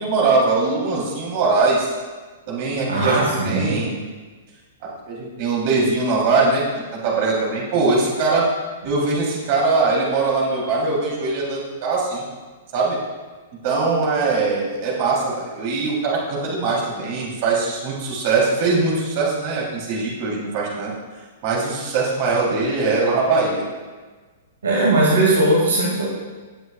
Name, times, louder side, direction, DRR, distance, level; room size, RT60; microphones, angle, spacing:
voice 1, 0.0-1.9 2.5-3.9 5.1-6.6 7.0-8.4 8.8-12.2 12.7-13.0 13.6-20.9 21.4-23.6, right 3 dB, 45° right, -4 dB, 3.5 m, -21 dB
voice 2, 2.9-3.8 24.6-26.1, right 2 dB, 75° right, -4 dB, 2.4 m, -18 dB
17.5 x 8.0 x 2.5 m, 1.4 s
figure-of-eight pair, 110°, 0 cm